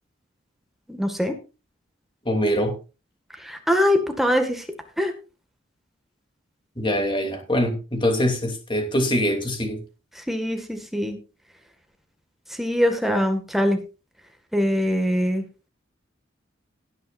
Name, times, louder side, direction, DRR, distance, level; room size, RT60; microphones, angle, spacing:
voice 1, 0.9-1.3 3.4-4.6 5.0-5.1 10.2-11.2 12.6-13.8 14.5-15.4, equal, ahead, 5 dB, 1.9 m, -22 dB
voice 2, 2.2-2.7 6.8-9.8, equal, 25° left, 5 dB, 3.0 m, -23 dB
18.5 x 9.3 x 2.6 m, 0.31 s
head